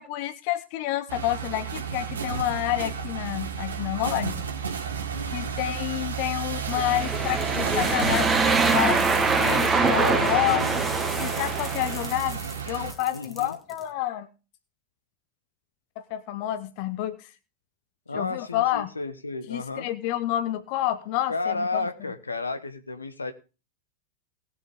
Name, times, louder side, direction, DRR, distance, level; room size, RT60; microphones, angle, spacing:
voice 1, 0.0-4.4 5.3-9.1 9.4-10.8 11.2-14.3 16.0-17.3 18.1-18.9 19.5-21.8, left 13 dB, 45° left, 12 dB, 0.8 m, -29 dB
sound 1, 1.1-12.9, right 6 dB, 70° right, 1.9 m, -32 dB
voice 2, 5.1-5.6 9.8-10.8 13.1-13.5 18.1-19.9 21.3-23.3, left 3 dB, 80° left, 9 dB, 1.2 m, -32 dB
sound 2, 6.6-12.1, right 4 dB, 15° right, 1.3 m, -24 dB
sound 3, 6.7-13.9, left 1 dB, 5° left, 1.6 m, -41 dB
19.0 x 7.0 x 3.6 m, 0.32 s
figure-of-eight pair, 90°, 0 cm